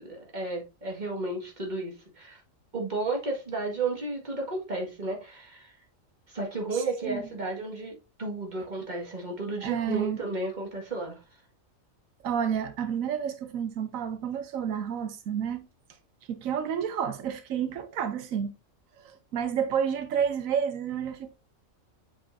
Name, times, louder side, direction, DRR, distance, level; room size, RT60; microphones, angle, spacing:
voice 1, 0.0-2.4 2.7-5.7 6.3-7.9 8.2-11.2, right 2 dB, 35° right, 2.1 m, -33 dB
voice 2, 6.7-7.2 9.6-10.2 12.2-15.7 16.3-18.5 19.0-21.3, right 8 dB, 90° right, 1.2 m, -30 dB
7.7 x 5.4 x 2.6 m
omnidirectional pair, 1.4 m